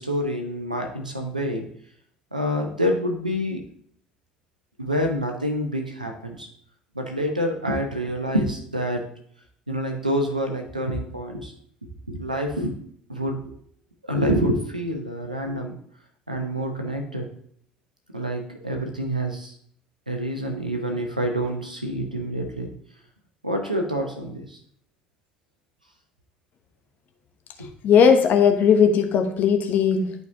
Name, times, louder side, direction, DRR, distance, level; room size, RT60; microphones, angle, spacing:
voice 1, 0.0-1.6 2.3-3.6 4.8-6.5 6.9-9.0 9.7-11.5 12.1-12.7 13.1-13.4 14.0-15.7 16.3-17.3 18.1-19.5 20.1-22.7 23.4-24.6, equal, 90° right, 3 dB, 0.9 m, -27 dB
voice 2, 27.8-30.1, left 7 dB, 45° left, 5 dB, 1.0 m, -18 dB
11.0 x 4.7 x 2.8 m, 0.64 s
figure-of-eight pair, 60°, 4 cm